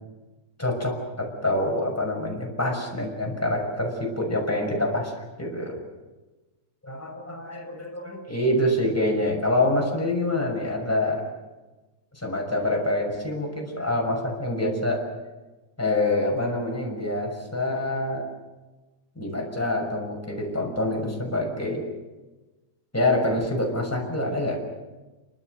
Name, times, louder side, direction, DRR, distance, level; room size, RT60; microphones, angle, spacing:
voice 1, 0.6-5.1 5.4-5.8 6.8-11.2 12.1-15.0 15.8-18.2 19.2-21.8 22.9-24.6, left 1 dB, 5° left, -1 dB, 6.0 m, -26 dB
28.0 x 25.0 x 6.7 m, 1.2 s
omnidirectional pair, 3.3 m